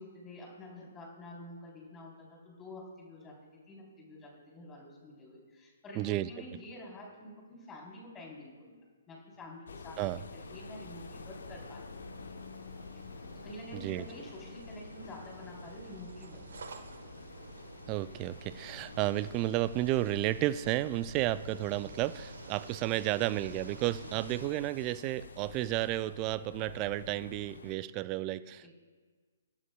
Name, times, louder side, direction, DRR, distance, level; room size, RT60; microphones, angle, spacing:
voice 1, 0.0-8.7 9.1-11.8 12.9-13.0 13.3-16.8 24.3-24.4 28.6-28.7, left 1 dB, 15° left, -2 dB, 3.5 m, -48 dB
voice 2, 6.0-6.3 10.0-10.2 13.7-14.1 17.9-28.7, right 15 dB, 30° right, 16 dB, 0.3 m, -32 dB
sound 1, 9.7-27.8, left 5 dB, 65° left, 0.8 m, -49 dB
sound 2, 10.4-24.5, right 4 dB, 65° right, 1.2 m, -51 dB
26.0 x 11.0 x 2.3 m, 1.5 s
figure-of-eight pair, 130°, 0 cm